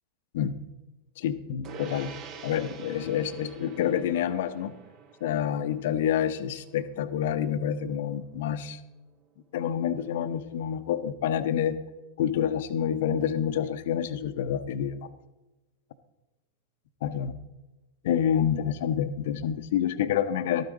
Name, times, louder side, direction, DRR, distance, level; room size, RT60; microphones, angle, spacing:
voice 1, 1.2-4.7 5.2-8.8 9.5-11.8 12.2-15.1 17.0-17.3 18.0-20.6, left 9 dB, 55° left, 12 dB, 0.7 m, -28 dB
Gong, 1.6-11.4, right 6 dB, 35° right, 1.0 m, -48 dB
12.5 x 9.2 x 4.0 m, 1.1 s
figure-of-eight pair, 90°, 0 cm